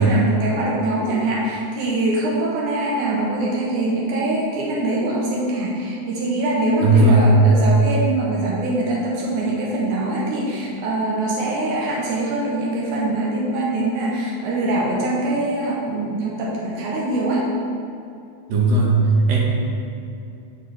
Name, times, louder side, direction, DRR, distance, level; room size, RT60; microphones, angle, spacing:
voice 1, 0.0-17.4, right 2 dB, 80° right, -4 dB, 2.3 m, -23 dB
voice 2, 6.8-7.3 18.5-19.0 19.3-19.4, right 2 dB, 65° right, -3 dB, 2.1 m, -15 dB
9.1 x 5.4 x 3.2 m, 2.6 s
omnidirectional pair, 3.5 m